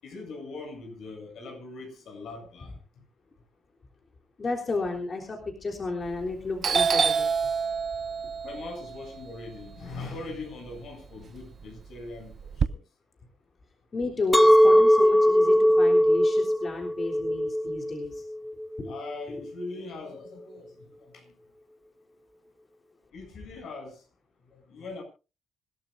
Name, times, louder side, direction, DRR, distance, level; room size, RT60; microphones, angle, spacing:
voice 1, 0.0-3.0 8.4-12.8 15.7-15.8 18.9-21.3 23.1-24.0 24.5-25.0, left 3 dB, 70° left, 7.9 m, -41 dB
voice 2, 4.4-7.3 13.9-18.3 18.8-18.9 19.4-19.5, left 3 dB, 35° left, 3.6 m, -32 dB
Doorbell, 6.0-6.3 6.6-10.8 11.1-12.7, right 6 dB, 45° right, 0.8 m, -28 dB
Chink clink, 14.3-19.5, equal, 5° left, 0.6 m, -20 dB
26.0 x 12.5 x 2.6 m
cardioid pair, 90°, 0 cm